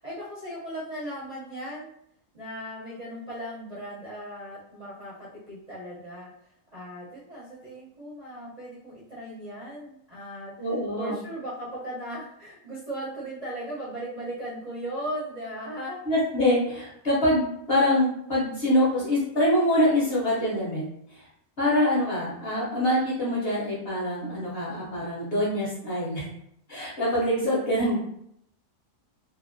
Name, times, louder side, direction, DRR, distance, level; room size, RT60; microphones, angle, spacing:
voice 1, 0.0-1.9 2.3-6.3 6.7-10.5 11.0-16.0, right 1 dB, 40° right, -9 dB, 0.6 m, -37 dB
voice 2, 10.6-11.1 16.1-20.8 21.1-21.3 21.6-26.3 26.7-28.0, left 1 dB, 45° left, -6 dB, 0.9 m, -25 dB
2.8 x 2.6 x 2.6 m, 0.73 s
omnidirectional pair, 1.7 m